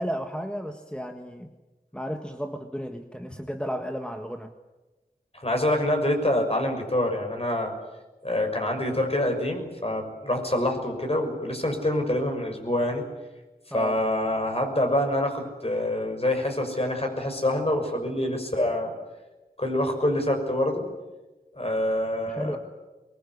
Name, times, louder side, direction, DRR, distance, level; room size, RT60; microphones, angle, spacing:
voice 1, 0.0-1.5 1.9-4.5 13.7-14.0 22.3-22.6, equal, 5° left, 5 dB, 1.6 m, -33 dB
voice 2, 5.3-7.7 8.2-13.1 13.7-18.9 19.6-20.9 21.6-22.6, left 1 dB, 40° left, 4 dB, 6.2 m, -26 dB
23.0 x 21.5 x 9.8 m, 1.1 s
wide cardioid pair, 55°, 16 cm